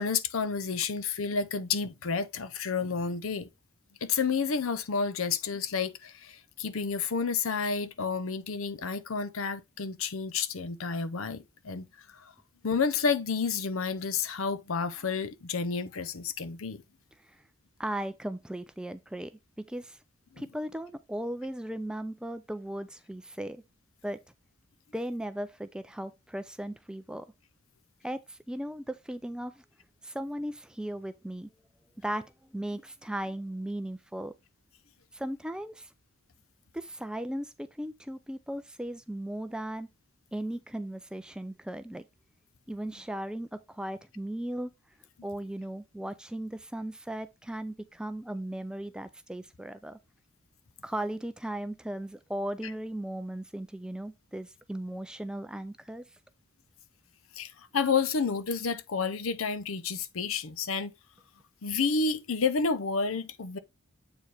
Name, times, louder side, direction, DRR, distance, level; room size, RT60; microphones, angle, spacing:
voice 1, 0.0-3.5 4.0-11.9 12.2-12.3 12.6-16.8 57.4-60.9 61.6-63.6, left 5 dB, 80° left, 0.7 m, -30 dB
voice 2, 17.8-20.0 20.4-23.6 24.0-24.2 24.9-27.3 28.0-29.6 30.0-31.5 32.0-34.3 35.1-35.9 36.7-39.9 40.3-42.1 42.7-44.7 45.2-50.0 50.8-56.1, right 1 dB, 5° right, 0.3 m, -37 dB
7.8 x 4.6 x 3.3 m
head